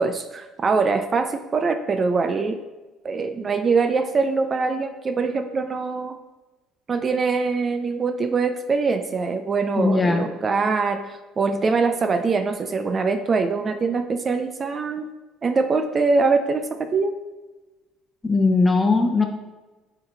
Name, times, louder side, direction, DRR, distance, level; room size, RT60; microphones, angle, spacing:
voice 1, 0.0-2.6 3.0-6.2 6.9-15.1 15.4-17.1, right 4 dB, 35° right, 7 dB, 0.5 m, -23 dB
voice 2, 9.8-10.2 18.2-19.3, left 3 dB, 20° left, 5 dB, 0.9 m, -19 dB
8.9 x 3.9 x 3.3 m, 1.2 s
supercardioid pair, 85°, 0 cm